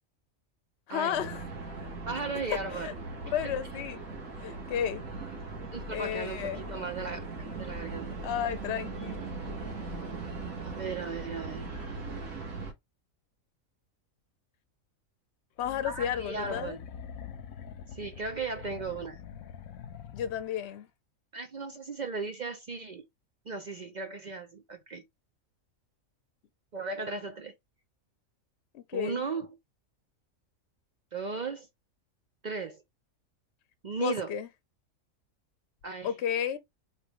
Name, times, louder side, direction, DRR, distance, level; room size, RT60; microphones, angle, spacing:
voice 1, 0.9-1.4 2.8-3.0 3.2-4.0 4.4-5.0 5.9-6.7 8.2-9.2 15.6-16.8 20.1-20.9 28.7-29.2 34.0-34.5 36.0-36.6, left 9 dB, 60° left, 0.9 m, -32 dB
sound 1, 1.1-12.7, right 3 dB, 90° right, 1.7 m, -39 dB
voice 2, 2.1-2.9 3.4-3.5 5.7-7.3 7.6-8.2 10.6-11.7 15.8-16.8 17.9-19.2 21.3-23.1 23.5-25.0 26.7-27.5 28.9-29.5 31.1-31.7 32.4-32.8 33.8-34.3 35.8-36.1, right 4 dB, 50° right, 0.5 m, -36 dB
sound 2, 15.6-20.8, left 7 dB, 85° left, 1.1 m, -45 dB
4.5 x 3.3 x 3.0 m
omnidirectional pair, 1.4 m